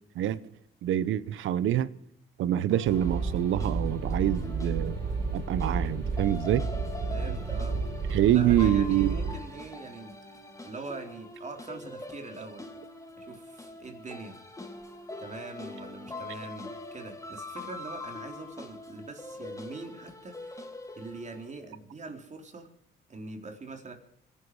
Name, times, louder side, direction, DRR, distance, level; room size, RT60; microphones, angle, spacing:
voice 1, 0.8-1.9 2.4-5.0 5.3-6.7 8.1-9.2, right 12 dB, 80° right, 1.0 m, -26 dB
sound 1, 2.7-21.5, left 3 dB, 15° left, 2.7 m, -44 dB
sound 2, 2.9-9.3, right 4 dB, 50° right, 5.4 m, -31 dB
voice 2, 7.1-7.8 8.2-10.2 10.6-12.6 13.2-14.4 15.2-20.7 21.0-22.7 23.1-23.9, right 3 dB, 35° right, 4.0 m, -43 dB
25.5 x 11.5 x 4.9 m
cardioid pair, 90°, 20 cm